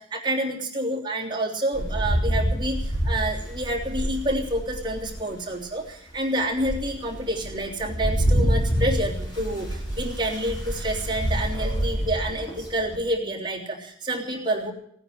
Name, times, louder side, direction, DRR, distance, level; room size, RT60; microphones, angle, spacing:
voice 1, 0.0-14.7, right 1 dB, 25° right, -2 dB, 3.1 m, -28 dB
Rain, 1.7-5.3 5.8-5.9 6.4-13.0, equal, 25° left, 5.2 m, -27 dB
17.5 x 9.7 x 8.5 m, 0.67 s
head